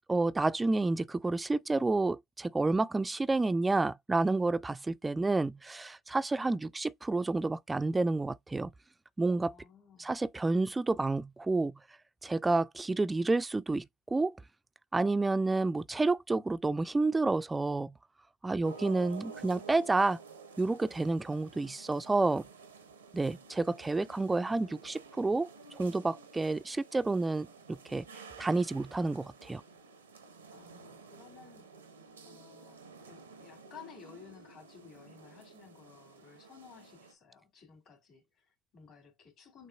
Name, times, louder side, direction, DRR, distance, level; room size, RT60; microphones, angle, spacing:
voice 1, 0.1-8.7 9.2-9.5 10.0-11.7 12.2-14.3 14.9-17.9 18.4-20.2 20.6-22.4 23.1-28.0 28.4-29.6, right 3 dB, 15° right, 0.3 m, -30 dB
voice 2, 9.5-10.2 30.5-31.7 32.2-32.8 33.1-39.7, left 7 dB, 55° left, 2.6 m, -55 dB
sound 1, 18.6-37.1, right 4 dB, 90° right, 0.7 m, -52 dB
6.9 x 2.5 x 2.3 m
hypercardioid pair, 65°, 0 cm